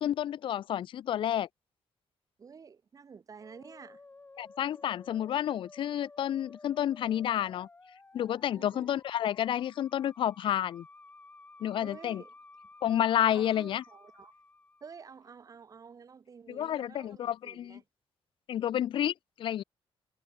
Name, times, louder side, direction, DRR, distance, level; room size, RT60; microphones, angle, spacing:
voice 1, 0.0-1.5 4.4-7.7 8.1-10.9 11.6-12.2 12.8-13.8 16.5-17.8 18.5-19.6, left 11 dB, 55° left, 0.4 m, -30 dB
voice 2, 2.4-4.0 8.5-8.9 11.8-12.3 13.3-14.3 14.8-17.8, right 6 dB, 35° right, 4.8 m, -50 dB
Musical instrument, 3.4-15.2, left 3 dB, 15° left, 3.8 m, -55 dB
wide cardioid pair, 170°, 10 cm